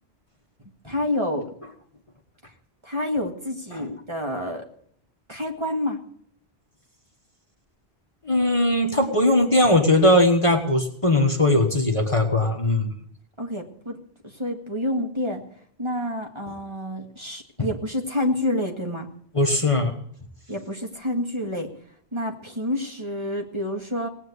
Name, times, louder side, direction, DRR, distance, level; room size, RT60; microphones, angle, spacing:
voice 1, 0.8-1.5 2.8-4.7 5.3-6.0 13.4-14.0 14.4-15.4 15.8-19.1 20.5-21.7 22.1-24.1, left 1 dB, 25° right, 2 dB, 2.0 m, -28 dB
voice 2, 8.3-12.9 19.3-19.9, left 1 dB, 30° left, 4 dB, 1.5 m, -19 dB
18.5 x 8.5 x 8.2 m, 0.64 s
omnidirectional pair, 1.1 m